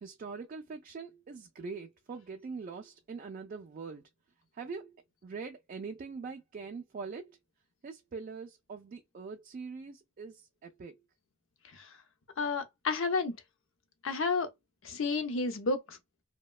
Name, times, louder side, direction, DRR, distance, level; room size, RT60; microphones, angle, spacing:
voice 1, 0.0-4.0 4.6-5.0 5.2-7.4 7.8-11.0, right 4 dB, 40° right, 0.3 m, -43 dB
voice 2, 12.4-13.4 14.0-14.5 14.8-16.0, left 4 dB, 65° left, 0.6 m, -31 dB
2.9 x 2.1 x 2.3 m
head